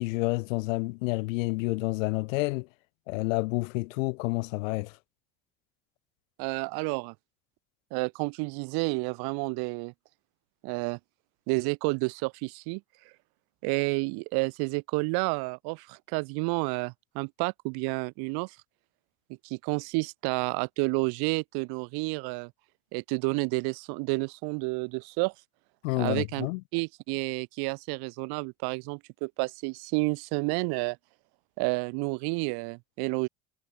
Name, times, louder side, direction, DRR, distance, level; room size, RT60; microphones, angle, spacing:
voice 1, 0.0-2.7 3.1-4.9 25.8-26.6, left 24 dB, 75° left, 6.7 m, -29 dB
voice 2, 6.4-7.1 7.9-9.9 10.6-11.0 11.5-12.8 13.6-18.6 19.4-22.5 22.9-25.3 26.0-31.0 31.6-33.3, right 31 dB, 70° right, 6.3 m, -30 dB
hypercardioid pair, 65°, 39 cm